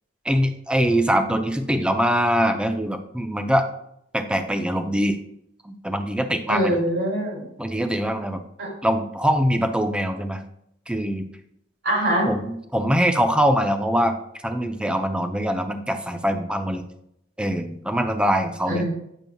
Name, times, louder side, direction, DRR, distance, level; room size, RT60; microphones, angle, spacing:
voice 1, 0.3-3.7 4.1-5.2 5.6-6.8 7.6-8.4 8.8-10.4 10.9-11.3 12.3-14.2 14.4-16.8 17.4-18.8, equal, 5° right, 7 dB, 0.5 m, -23 dB
voice 2, 6.5-7.5 8.6-8.7 11.8-12.3 18.7-18.9, right 1 dB, 70° right, -2 dB, 3.0 m, -23 dB
9.0 x 6.7 x 2.3 m, 0.76 s
head